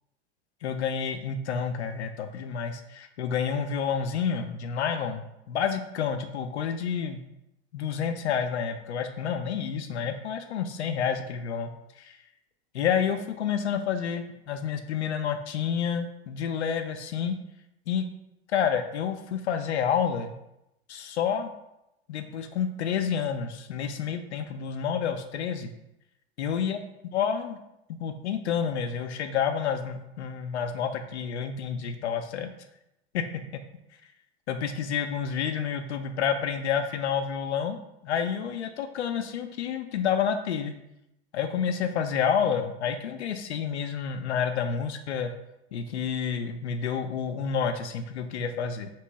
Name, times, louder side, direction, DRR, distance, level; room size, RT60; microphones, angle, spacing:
voice 1, 0.6-5.2 5.5-7.2 7.7-11.7 12.0-12.1 12.7-17.4 17.9-18.1 18.5-20.3 20.9-21.5 22.1-25.7 26.4-26.8 27.0-27.6 27.9-32.5 33.1-33.3 33.5-33.6 34.5-37.8 38.0-40.7 41.3-45.3 45.7-48.9, left 7 dB, 90° left, 7 dB, 0.5 m, -29 dB
3.0 x 3.0 x 4.6 m, 0.86 s
hypercardioid pair, 90°, 33 cm